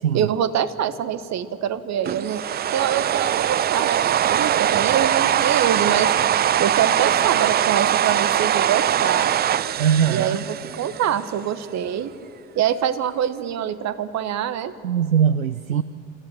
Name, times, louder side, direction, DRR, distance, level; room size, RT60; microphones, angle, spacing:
voice 1, 0.1-2.4 2.7-6.1 6.6-9.3 10.1-12.1 12.6-14.7, right 9 dB, 40° right, 13 dB, 1.3 m, -25 dB
sound 1, 2.0-11.3, right 10 dB, 25° right, 0.5 m, -21 dB
voice 2, 9.8-10.4 14.8-15.8, right 8 dB, 85° right, 15 dB, 0.6 m, -20 dB
28.5 x 13.5 x 8.0 m, 2.8 s
figure-of-eight pair, 60°, 40 cm